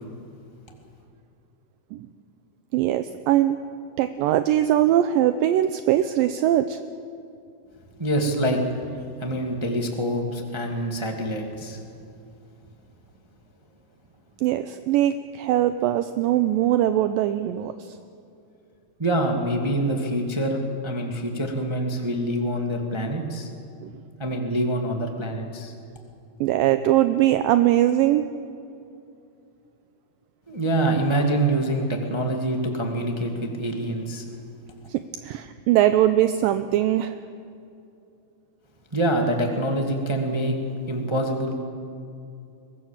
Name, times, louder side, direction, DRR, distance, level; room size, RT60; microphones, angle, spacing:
voice 1, 2.7-3.6 4.0-6.8 14.4-18.0 23.8-23.9 26.4-28.2 34.9-37.2, right 12 dB, 80° right, 10 dB, 2.2 m, -21 dB
voice 2, 8.0-8.6 9.2-11.8 19.0-23.5 24.2-25.7 30.5-34.2 38.9-40.6 40.9-41.6, right 1 dB, 25° right, 2 dB, 0.5 m, -25 dB
23.5 x 18.5 x 7.4 m, 2.7 s
omnidirectional pair, 4.4 m